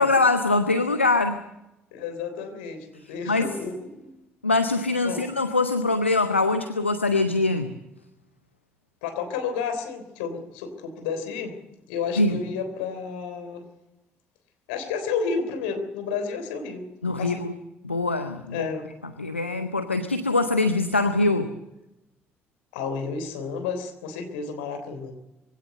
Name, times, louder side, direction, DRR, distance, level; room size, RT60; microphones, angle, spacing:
voice 1, 0.0-1.4 3.3-3.5 4.4-7.8 12.2-12.4 17.0-17.5 17.8-18.7 19.2-21.5, left 3 dB, 85° left, 10 dB, 0.7 m, -23 dB
voice 2, 1.9-4.1 5.0-5.3 9.0-11.6 11.9-13.7 14.7-16.9 17.2-17.5 18.5-18.9 22.7-25.1, left 5 dB, 70° left, 7 dB, 3.4 m, -31 dB
23.0 x 17.0 x 7.9 m, 0.93 s
figure-of-eight pair, 45°, 6 cm